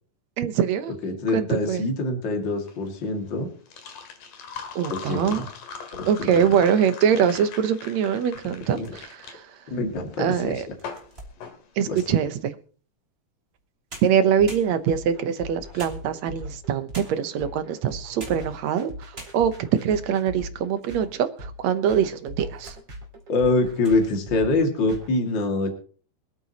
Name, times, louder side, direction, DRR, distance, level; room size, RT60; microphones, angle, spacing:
voice 1, 0.4-0.9 1.3-1.8 4.8-5.4 6.1-9.4 10.2-10.6 11.8-12.5 14.0-18.9 19.3-19.5 19.8-22.7, right 8 dB, 65° right, 11 dB, 2.1 m, -23 dB
voice 2, 1.0-3.5 4.9-5.5 5.9-6.6 8.7-9.0 9.7-10.6 11.9-12.0 23.3-25.7, left 2 dB, 40° left, 3 dB, 2.7 m, -25 dB
sound 1, 2.5-12.3, left 6 dB, 80° left, 3.6 m, -41 dB
sound 2, 8.6-9.3 9.9-10.0 10.6-12.3 13.5-13.6 13.9-15.1 15.8-16.5 16.9-17.4 18.0-18.5 18.8-18.9 19.1-19.7 20.3-21.1 21.4-21.5 22.2-22.8 23.2-23.4 23.7-24.0, right 2 dB, 20° right, 3.0 m, -44 dB
sound 3, 14.4-25.1, equal, 35° right, 3.3 m, -40 dB
25.5 x 8.9 x 3.0 m, 0.41 s
omnidirectional pair, 3.7 m